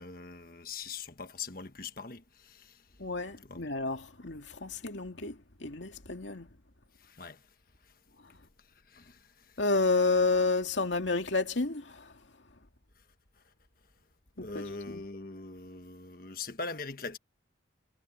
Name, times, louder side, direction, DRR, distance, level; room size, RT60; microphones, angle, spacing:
voice 1, 0.0-2.8 3.4-3.7 7.0-7.4 8.9-9.6 14.4-17.2, left 4 dB, 50° left, 1.4 m, -42 dB
voice 2, 3.0-6.5 9.6-12.1 14.4-15.0, left 3 dB, 80° left, 2.3 m, -30 dB
head